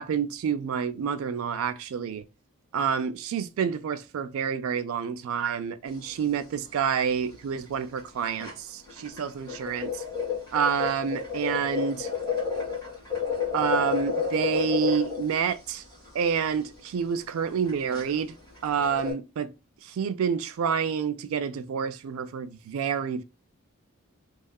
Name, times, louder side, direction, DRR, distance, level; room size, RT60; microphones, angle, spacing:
voice 1, 0.0-2.3 2.7-10.0 10.5-12.1 13.5-15.8 16.1-18.4 18.6-19.5 19.8-23.2, right 7 dB, 70° right, 0.3 m, -28 dB
sound 1, 5.9-6.3 6.6-6.7 7.0-7.2 7.7-7.8 8.0-19.1, left 6 dB, 15° left, 1.3 m, -31 dB
2.7 x 2.3 x 2.2 m
head